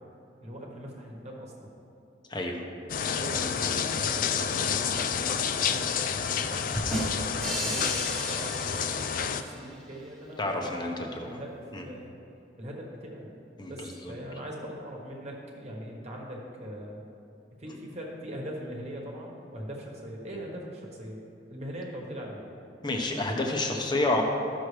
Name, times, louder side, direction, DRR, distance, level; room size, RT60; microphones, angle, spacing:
voice 1, 0.4-1.7 3.1-6.8 7.2-12.1 12.6-13.3 13.7-17.0 17.6-21.2 21.5-22.5, equal, 35° right, -2 dB, 1.3 m, -41 dB
voice 2, 2.3-2.6 5.6-5.8 10.4-10.9 11.2-11.4 11.7-11.8 13.6-14.1 22.8-24.2, left 2 dB, 25° left, 2 dB, 0.8 m, -29 dB
sound 1, 2.9-9.4, left 7 dB, 45° left, 0.3 m, -29 dB
sound 2, 6.7-9.6, equal, ahead, 1.2 m, -34 dB
13.5 x 6.0 x 3.3 m, 2.8 s
head